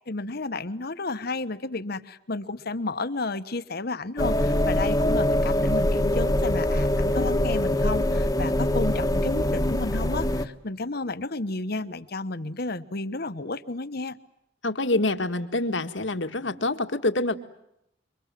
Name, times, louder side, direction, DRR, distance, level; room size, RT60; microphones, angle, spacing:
voice 1, 0.1-14.2, left 3 dB, 55° left, 12 dB, 1.3 m, -32 dB
sound 1, 4.2-10.5, left 1 dB, 20° left, 1.4 m, -23 dB
voice 2, 14.6-17.3, left 2 dB, 75° left, 8 dB, 1.9 m, -26 dB
28.0 x 24.5 x 7.6 m, 0.80 s
head